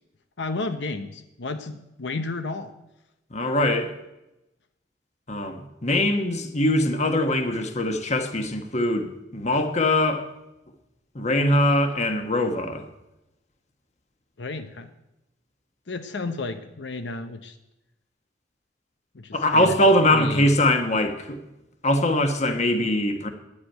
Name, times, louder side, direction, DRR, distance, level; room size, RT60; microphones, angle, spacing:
voice 1, 0.4-2.7 14.4-14.9 15.9-17.6 19.1-19.8 20.1-20.5, left 3 dB, 85° left, 9 dB, 0.8 m, -32 dB
voice 2, 3.3-3.9 5.3-10.3 11.1-12.8 19.3-21.4 21.8-23.3, left 1 dB, 40° left, 6 dB, 1.3 m, -22 dB
10.0 x 8.6 x 9.1 m, 0.92 s
head